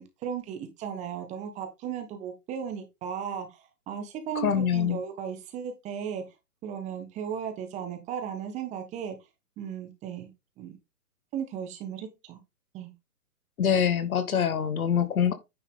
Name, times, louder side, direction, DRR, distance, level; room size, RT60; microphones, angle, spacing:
voice 1, 0.0-3.6 3.9-6.2 6.6-9.2 9.6-10.3 10.6-10.7 11.3-12.4 12.7-12.9, right 7 dB, 15° right, 1.3 m, -36 dB
voice 2, 4.4-5.0 13.6-15.3, left 8 dB, 65° left, 1.7 m, -25 dB
9.7 x 5.4 x 3.7 m
hypercardioid pair, 140°, 46 cm